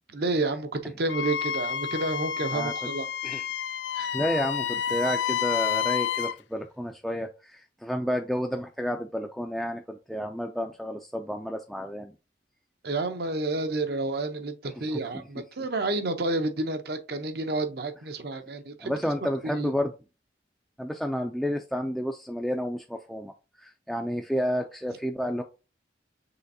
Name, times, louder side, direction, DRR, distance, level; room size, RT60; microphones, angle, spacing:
voice 1, 0.1-3.4 3.9-4.2 12.8-18.9 19.4-19.7, right 2 dB, 60° right, 0.7 m, -30 dB
Wind instrument woodwind instrument, 1.1-6.4, left 9 dB, 80° left, 0.3 m, -29 dB
voice 2, 4.1-12.1 14.9-15.0 18.8-19.9 20.8-23.3 23.6-25.4, equal, ahead, 0.3 m, -30 dB
5.6 x 3.3 x 2.7 m
head